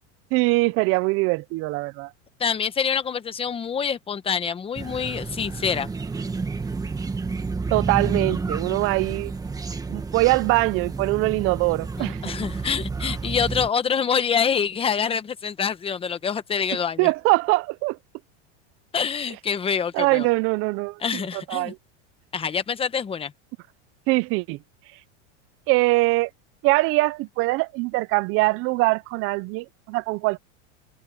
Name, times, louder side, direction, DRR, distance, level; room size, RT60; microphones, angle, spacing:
voice 1, 0.3-2.1 7.7-9.3 9.9-12.2 17.0-18.0 19.9-21.2 21.5-21.8 24.1-24.6 25.7-26.3 26.6-30.4, right 23 dB, 40° right, 0.5 m, -22 dB
voice 2, 2.4-5.9 12.0-17.1 18.9-20.3 21.0-21.7 22.3-23.3, left 7 dB, 15° left, 1.1 m, -26 dB
sound 1, 4.7-13.7, right 4 dB, 10° right, 1.4 m, -30 dB
supercardioid pair, 150°, 36 cm